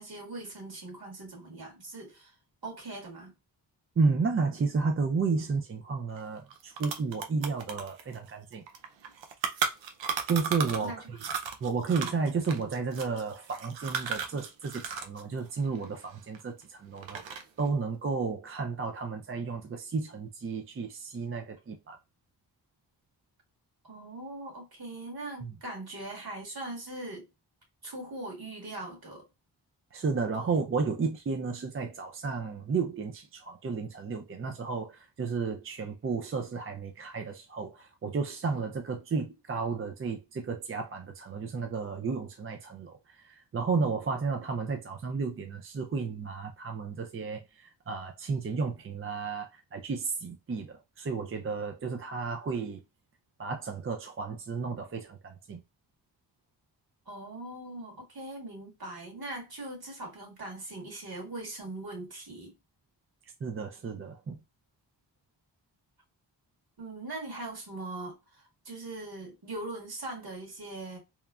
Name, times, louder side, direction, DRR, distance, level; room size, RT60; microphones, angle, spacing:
voice 1, 0.0-2.3 2.6-3.3 10.6-11.0 23.8-27.3 27.8-29.2 30.4-30.6 57.1-62.5 66.8-71.0, right 2 dB, 55° right, 1.6 m, -41 dB
voice 2, 4.0-8.6 10.3-11.2 11.6-22.0 25.4-25.6 29.9-52.8 53.4-55.6 63.4-64.4, right 4 dB, 30° right, 0.4 m, -32 dB
sound 1, 6.2-6.3 6.5-10.9 11.2-15.2 15.5-16.6 17.0-17.6, right 6 dB, 85° right, 0.6 m, -35 dB
3.0 x 2.1 x 2.3 m
cardioid pair, 50°, 44 cm